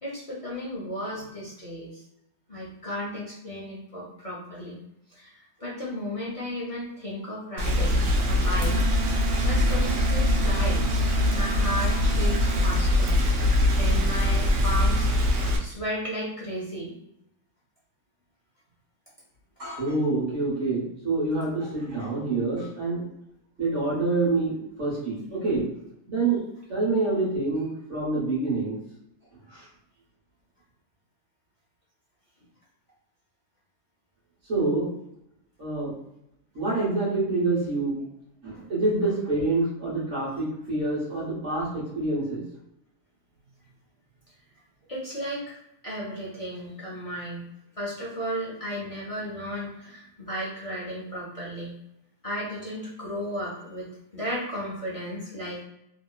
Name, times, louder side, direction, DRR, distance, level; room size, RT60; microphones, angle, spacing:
voice 1, 0.0-1.9 2.5-4.8 5.2-5.3 5.6-8.8 9.4-10.8 11.3-13.2 13.8-15.2 15.6-16.9 44.9-45.6 45.8-47.5 47.8-51.7 52.2-55.6, equal, 50° left, -7 dB, 0.4 m, -34 dB
Rain, 7.6-15.6, left 1 dB, 65° right, 0.9 m, -23 dB
Wind instrument woodwind instrument, 8.6-12.8, right 6 dB, 85° right, 1.2 m, -35 dB
voice 2, 19.6-23.0 23.6-25.6 26.1-26.4 26.7-28.8 29.5-29.6 34.5-34.9 35.6-35.9 36.5-38.0 38.4-42.4, right 3 dB, 50° right, -6 dB, 1.3 m, -26 dB
3.0 x 2.8 x 2.3 m, 0.79 s
omnidirectional pair, 1.8 m